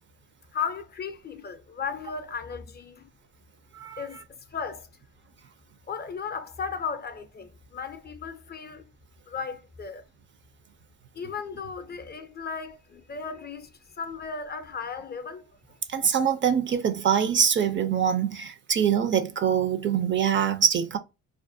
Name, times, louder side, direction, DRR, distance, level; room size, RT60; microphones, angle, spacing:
voice 1, 0.5-3.1 4.0-4.9 5.9-8.9 9.3-10.0 11.1-15.5, left 6 dB, 35° left, 0.4 m, -35 dB
voice 2, 3.7-4.0 15.9-21.0, right 8 dB, 40° right, 0.4 m, -24 dB
2.4 x 2.1 x 2.5 m
cardioid pair, 90°, 30 cm